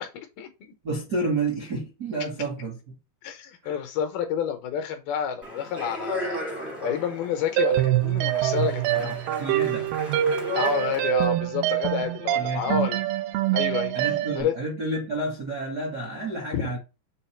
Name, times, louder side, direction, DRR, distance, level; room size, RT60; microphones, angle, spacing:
voice 1, 0.0-0.7 3.2-6.4 6.8-9.2 10.5-13.0 13.5-13.9 14.4-14.6 16.5-16.7, left 8 dB, 75° left, 2.4 m, -29 dB
voice 2, 0.8-3.0 3.6-3.8 8.9-9.9 12.3-12.8 13.9-16.8, right 2 dB, 65° right, 1.0 m, -30 dB
Speech, 5.4-11.2, left 1 dB, ahead, 0.4 m, -36 dB
sound 1, 7.6-14.4, right 13 dB, 85° right, 2.4 m, -25 dB
7.0 x 2.5 x 5.6 m
omnidirectional pair, 5.0 m